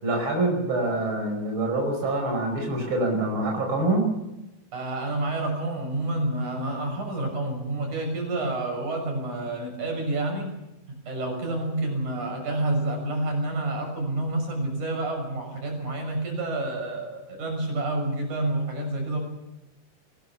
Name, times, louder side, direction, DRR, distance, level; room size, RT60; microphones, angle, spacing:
voice 1, 0.0-4.0, right 2 dB, 40° right, 1 dB, 5.9 m, -25 dB
voice 2, 4.7-10.5 10.9-19.2, right 2 dB, 70° right, 2 dB, 7.9 m, -29 dB
24.0 x 20.5 x 7.1 m, 0.92 s
omnidirectional pair, 3.6 m